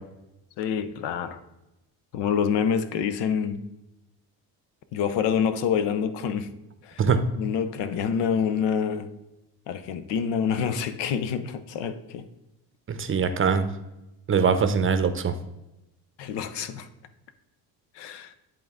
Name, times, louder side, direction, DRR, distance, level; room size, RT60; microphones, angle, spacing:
voice 1, 0.6-1.4 2.1-3.7 4.9-6.5 6.8-7.0 7.4-9.1 9.7-12.3 16.2-16.9 18.0-18.3, left 7 dB, 80° left, 0.7 m, -27 dB
voice 2, 12.9-13.7 14.3-15.3, right 6 dB, 30° right, 0.6 m, -22 dB
10.0 x 3.8 x 3.5 m
cardioid pair, 100°, 42 cm